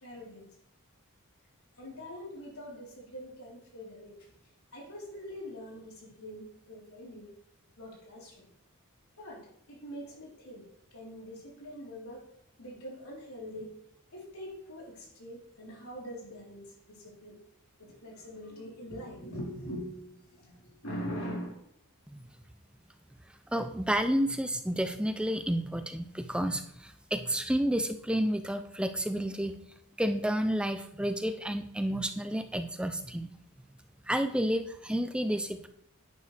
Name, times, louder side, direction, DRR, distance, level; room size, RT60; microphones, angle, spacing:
voice 1, 0.0-0.5 1.8-4.3 4.7-7.3 7.8-8.5 9.2-10.6 10.9-12.2 12.6-13.7 14.1-17.4 17.8-21.6, equal, 85° left, -3 dB, 3.8 m, -43 dB
voice 2, 23.5-29.5 30.0-33.3 34.1-35.7, equal, 5° right, 9 dB, 0.4 m, -30 dB
11.0 x 9.5 x 3.3 m, 0.72 s
head